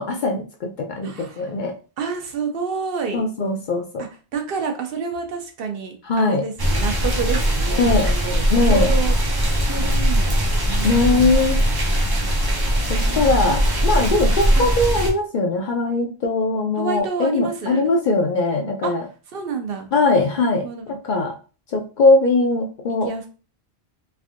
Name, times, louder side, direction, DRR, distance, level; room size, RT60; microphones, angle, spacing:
voice 1, 0.0-1.7 3.1-4.0 6.1-6.4 7.8-8.1 8.5-8.9 10.8-11.6 12.9-19.1 19.9-21.4 21.7-23.1, left 3 dB, 60° left, 2 dB, 0.6 m, -20 dB
voice 2, 1.0-1.5 2.0-3.2 4.0-9.2 9.7-11.4 13.0-13.6 14.6-14.7 16.8-17.8 18.8-18.9 19.3-19.9 20.4-21.0 23.0-23.3, right 5 dB, 65° right, 5 dB, 0.8 m, -29 dB
sound 1, 6.6-15.1, equal, 30° right, 0.4 m, -20 dB
3.3 x 2.5 x 2.4 m, 0.35 s
omnidirectional pair, 1.1 m